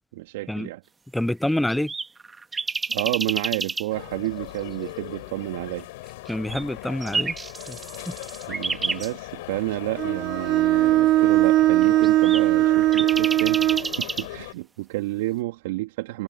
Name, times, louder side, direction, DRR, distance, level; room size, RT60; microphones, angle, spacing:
voice 1, 0.1-0.8 2.9-5.9 8.5-16.2, right 19 dB, 75° right, 2.8 m, -30 dB
voice 2, 1.1-1.9 6.3-7.3 7.7-7.8 8.1-8.2, left 1 dB, 5° left, 0.9 m, -26 dB
sound 1, 1.3-3.8 6.3-9.1 11.8-14.3, right 4 dB, 20° right, 1.8 m, -30 dB
sound 2, 3.9-14.5, left 20 dB, 75° left, 4.6 m, -39 dB
Bowed string instrument, 10.0-13.9, right 15 dB, 55° right, 2.2 m, -19 dB
hypercardioid pair, 75°, 0 cm